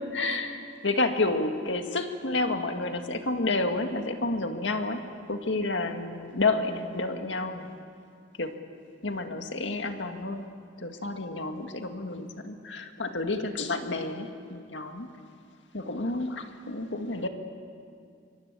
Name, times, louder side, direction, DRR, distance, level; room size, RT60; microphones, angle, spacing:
voice 1, 0.0-5.0 5.3-7.7 8.4-8.5 9.0-10.5 10.8-15.1 15.7-17.3, left 2 dB, 85° left, 5 dB, 2.0 m, -30 dB
25.5 x 22.5 x 8.4 m, 2.3 s
head